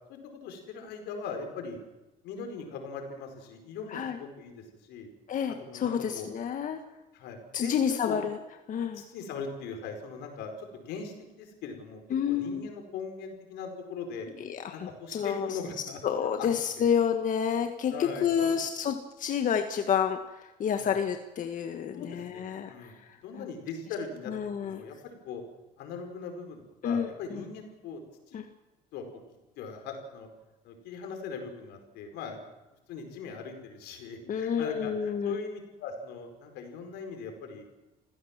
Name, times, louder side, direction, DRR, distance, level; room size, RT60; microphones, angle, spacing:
voice 1, 0.1-1.8 2.2-5.1 5.6-6.3 7.1-8.2 8.9-14.3 14.7-16.0 16.4-16.5 16.7-16.9 17.9-18.6 20.7-21.0 21.9-23.0 23.2-24.3 24.6-25.4 25.8-28.0 28.3-28.4 28.9-29.2 29.6-30.3 30.6-32.5 32.9-37.7, left 5 dB, 85° left, 5 dB, 4.9 m, -40 dB
voice 2, 5.3-6.8 7.5-8.4 8.7-9.0 12.1-12.7 14.4-15.6 16.0-23.4 24.3-24.8 26.8-27.4 28.3-28.4 34.3-35.4, left 8 dB, 50° left, 6 dB, 1.6 m, -29 dB
26.5 x 16.0 x 7.4 m, 1.1 s
cardioid pair, 110°, 17 cm